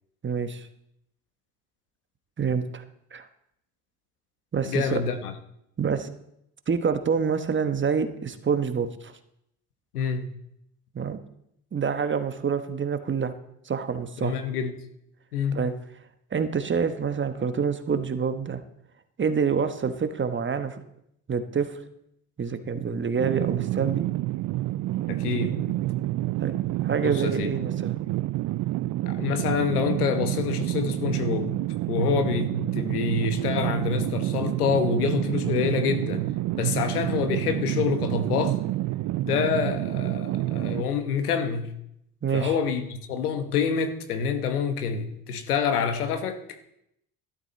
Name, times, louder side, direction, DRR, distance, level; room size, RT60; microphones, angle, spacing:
voice 1, 0.2-0.7 2.4-2.8 3.1-3.3 4.5-4.9 5.8-6.1 6.7-9.1 10.9-11.2 11.7-13.3 13.7-14.4 15.5-15.7 16.3-18.6 19.2-20.8 21.3-21.8 22.4-24.1 26.4-27.9 42.2-42.5, right 6 dB, 25° right, 9 dB, 1.2 m, -27 dB
voice 2, 4.6-5.3 9.9-10.3 14.2-14.7 15.3-15.6 25.1-25.8 27.0-27.5 29.1-31.5 31.9-36.2 36.5-38.6 39.2-41.7 42.3-46.4, left 6 dB, 90° left, 8 dB, 1.3 m, -27 dB
sound 1, 23.2-40.8, right 16 dB, 45° right, 0.4 m, -28 dB
12.5 x 11.5 x 4.1 m, 0.77 s
hypercardioid pair, 70°, 44 cm